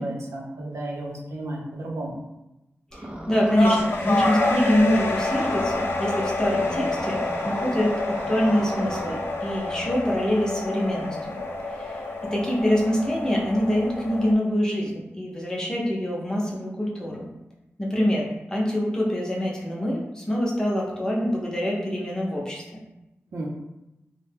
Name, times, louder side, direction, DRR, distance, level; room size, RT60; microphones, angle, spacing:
voice 1, 0.0-2.2 23.3-23.5, right 1 dB, 85° right, -1 dB, 0.6 m, -32 dB
voice 2, 2.9-7.2 7.4-11.4 11.7-12.0 12.3-17.3 17.8-22.8, equal, 15° left, -3 dB, 0.8 m, -25 dB
sound 1, 2.9-5.7 6.5-9.2, right 1 dB, 20° right, 0.5 m, -38 dB
sound 2, 3.6-14.3, left 2 dB, 55° left, 0.5 m, -28 dB
3.1 x 2.1 x 3.3 m, 0.95 s
wide cardioid pair, 80°, 5 cm